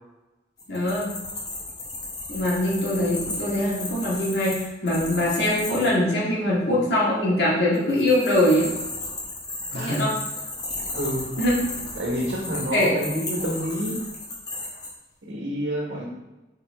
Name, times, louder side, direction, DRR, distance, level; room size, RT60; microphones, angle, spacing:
sound 1, 0.6-5.9 7.7-14.9, left 2 dB, 20° left, 1.0 m, -34 dB
voice 1, 0.7-1.1 2.3-8.7 9.7-10.1 11.4-11.6 12.7-12.9, left 1 dB, 75° left, -6 dB, 2.0 m, -22 dB
voice 2, 9.7-10.0 10.9-11.4 11.9-14.0 15.2-16.1, equal, 80° right, -2 dB, 1.3 m, -28 dB
5.6 x 4.3 x 4.2 m, 1.0 s
head